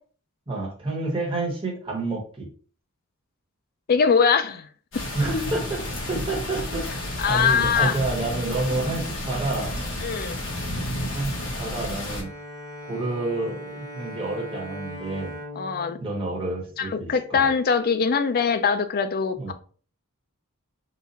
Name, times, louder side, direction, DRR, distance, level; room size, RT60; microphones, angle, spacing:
voice 1, 0.5-2.5 5.1-6.9 7.2-9.7 11.1-12.3 12.8-15.4 16.0-17.5 19.4-19.5, right 2 dB, 25° right, -1 dB, 1.3 m, -29 dB
voice 2, 3.9-4.7 7.2-8.0 10.0-10.4 15.6-16.0 16.8-19.4, left 6 dB, 45° left, 10 dB, 0.4 m, -22 dB
sound 1, 4.9-12.2, left 1 dB, 60° left, 1.4 m, -31 dB
Bowed string instrument, 11.9-17.3, equal, 80° left, 1.6 m, -40 dB
4.0 x 2.4 x 4.1 m, 0.42 s
head